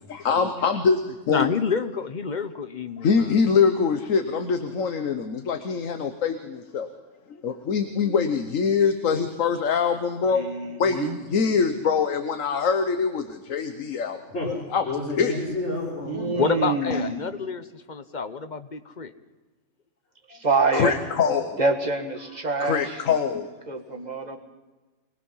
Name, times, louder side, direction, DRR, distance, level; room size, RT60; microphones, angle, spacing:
voice 1, 0.1-1.0 1.3-1.5 3.0-6.9 7.4-10.5 10.8-14.2 14.4-14.8 15.2-15.3 20.7-21.6 22.6-23.5, left 6 dB, 80° left, 7 dB, 1.4 m, -24 dB
voice 2, 1.3-3.4 16.4-19.1, left 5 dB, 40° left, 11 dB, 0.9 m, -28 dB
voice 3, 10.3-11.2 16.0-17.3 20.3-21.0 21.6-23.0 23.7-24.4, right 3 dB, 35° right, 4 dB, 1.8 m, -26 dB
voice 4, 14.3-16.4, left 2 dB, 60° left, -3 dB, 4.8 m, -31 dB
25.0 x 19.5 x 5.6 m, 1.2 s
omnidirectional pair, 1.4 m